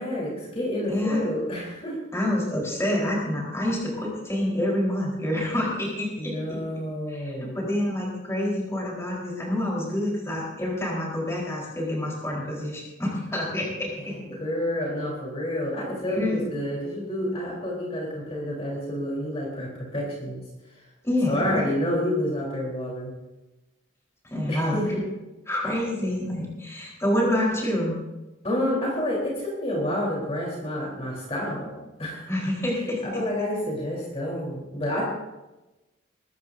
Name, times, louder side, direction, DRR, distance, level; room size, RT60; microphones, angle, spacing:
voice 1, 0.0-2.0 6.2-7.5 14.0-20.4 21.3-23.1 24.5-25.0 28.4-31.7 32.0-32.3 33.0-35.0, left 1 dB, 30° left, -4 dB, 3.7 m, -29 dB
voice 2, 0.9-1.2 2.1-6.6 7.1-14.1 16.1-16.4 21.0-21.6 24.3-25.0 25.5-28.0 32.3-33.0, left 1 dB, 15° left, -4 dB, 4.0 m, -27 dB
20.5 x 14.0 x 2.7 m, 1.1 s
head